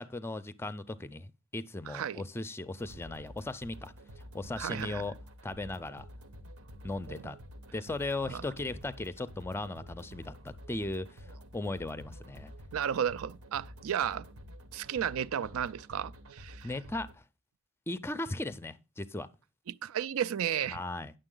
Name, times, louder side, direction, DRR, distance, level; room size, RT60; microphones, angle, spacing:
voice 1, 0.0-3.9 4.3-5.1 5.4-6.1 6.8-7.4 7.7-10.3 10.7-11.2 11.5-12.5 16.6-17.1 17.9-19.3 20.7-21.1, left 2 dB, 10° left, 0.5 m, -37 dB
voice 2, 1.9-2.2 4.6-5.0 7.1-7.3 8.3-8.4 12.7-14.3 14.7-16.7 19.7-20.8, right 9 dB, 70° right, 0.4 m, -33 dB
sound 1, 2.8-17.1, equal, 90° right, 1.1 m, -50 dB
9.8 x 6.8 x 3.8 m
head